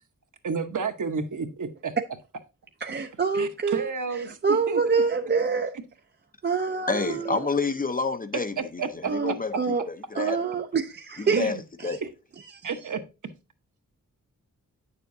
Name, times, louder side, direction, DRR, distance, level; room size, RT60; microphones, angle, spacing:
voice 1, 0.4-1.9 3.3-4.8 8.8-9.3 11.3-11.6 12.0-12.1 12.6-13.0, right 5 dB, 65° right, 1.0 m, -31 dB
voice 2, 2.8-3.9 4.3-5.8 6.4-7.4 9.1-9.8 10.1-11.4 11.8-12.0, right 5 dB, 35° right, 0.4 m, -26 dB
voice 3, 6.9-10.4 11.2-11.6 11.8-12.0, left 4 dB, 25° left, 0.5 m, -29 dB
9.3 x 6.8 x 2.6 m
wide cardioid pair, 170°, 33 cm